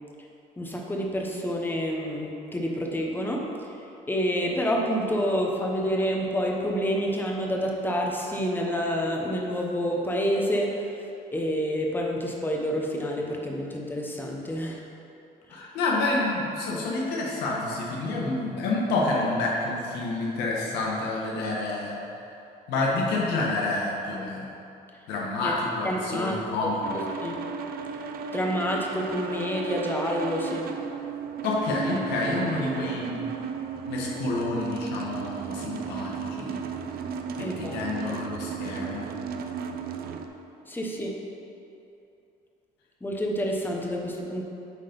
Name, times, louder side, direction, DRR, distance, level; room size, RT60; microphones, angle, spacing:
voice 1, 0.6-3.5 4.1-11.0 11.3-14.8 25.4-25.6 25.8-26.4 27.2-27.4 28.3-30.7 37.4-37.8 38.1-38.2 40.7-41.2 43.0-44.4, equal, 10° left, 0 dB, 1.1 m, -28 dB
voice 2, 15.5-22.0 22.7-24.5 25.1-27.0 31.4-33.3 33.8-36.6 37.4-39.1, left 2 dB, 90° left, -3 dB, 1.4 m, -28 dB
sound 1, 26.8-40.3, right 6 dB, 60° right, 0.6 m, -34 dB
9.1 x 4.0 x 5.3 m, 2.9 s
cardioid pair, 110°, 17 cm